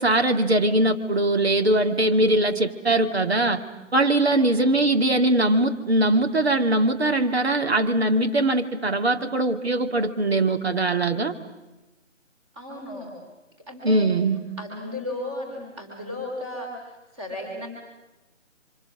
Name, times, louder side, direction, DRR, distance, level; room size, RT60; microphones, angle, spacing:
voice 1, 0.0-3.6 3.9-11.3 13.8-14.4, right 2 dB, 55° right, 7 dB, 2.3 m, -21 dB
voice 2, 12.5-13.1 13.7-14.1 14.6-17.7, left 1 dB, 20° right, -1 dB, 4.8 m, -34 dB
29.5 x 25.5 x 7.7 m, 1.1 s
figure-of-eight pair, 155°, 38 cm